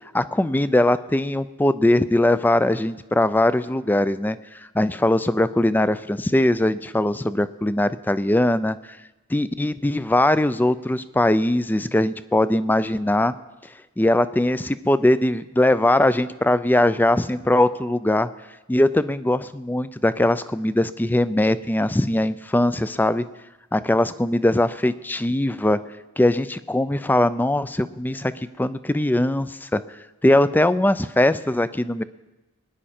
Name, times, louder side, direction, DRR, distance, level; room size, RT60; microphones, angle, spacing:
voice 1, 0.1-8.8 9.3-13.3 14.0-18.3 18.7-23.3 23.7-25.8 26.2-29.8 30.2-32.0, left 1 dB, 10° left, 14 dB, 0.4 m, -21 dB
21.0 x 10.0 x 4.3 m, 1.1 s
head